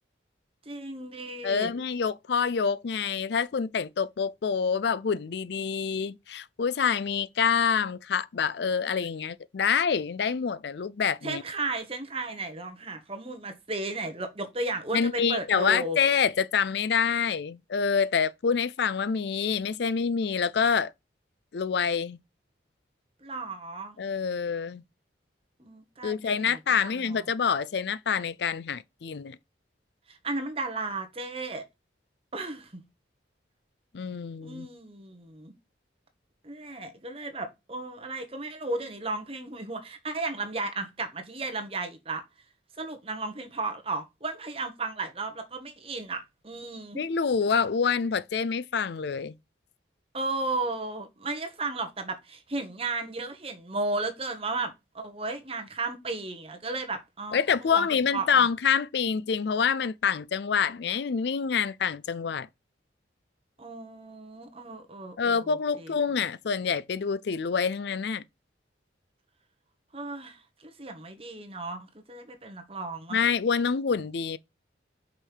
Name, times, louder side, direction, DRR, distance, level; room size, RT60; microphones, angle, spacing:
voice 1, 0.6-1.7 11.2-16.0 23.2-24.0 25.6-27.3 30.1-31.6 32.3-32.8 34.4-35.5 36.4-42.2 42.8-47.0 50.1-57.9 58.1-58.5 63.6-65.9 69.9-73.3, right 3 dB, 30° right, 1.2 m, -34 dB
voice 2, 1.4-11.4 14.9-20.9 21.5-22.2 24.0-24.8 26.0-29.4 33.9-34.7 47.0-49.3 57.3-62.5 65.2-68.2 73.1-74.4, left 6 dB, 65° left, 0.4 m, -27 dB
5.6 x 5.0 x 4.5 m
head